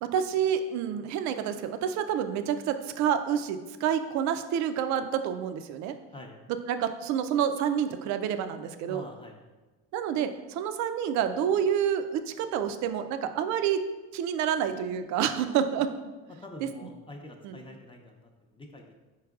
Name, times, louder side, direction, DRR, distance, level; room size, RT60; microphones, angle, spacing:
voice 1, 0.0-5.9 6.7-9.0 9.9-13.8 14.1-15.9 17.4-17.5, right 8 dB, 70° right, 9 dB, 0.4 m, -28 dB
voice 2, 5.8-6.3 8.9-9.4 15.2-15.8 16.3-19.0, left 2 dB, 20° left, 1 dB, 0.5 m, -46 dB
4.7 x 4.4 x 2.3 m, 1.2 s
cardioid pair, 95°, 29 cm